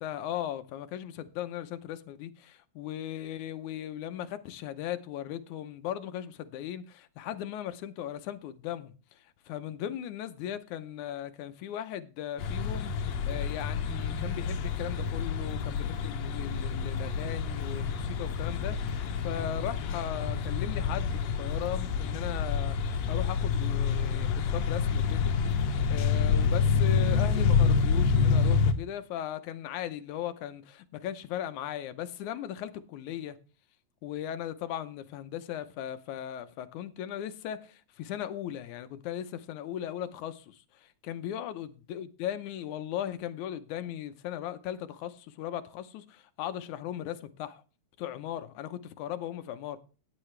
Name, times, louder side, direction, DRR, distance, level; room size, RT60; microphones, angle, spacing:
voice 1, 0.0-25.3 25.9-33.4 34.0-47.6 48.0-49.8, left 11 dB, 85° left, 2.2 m, -38 dB
sound 1, 12.4-28.7, left 5 dB, 70° left, 2.1 m, -28 dB
15.0 x 9.8 x 3.2 m
omnidirectional pair, 3.3 m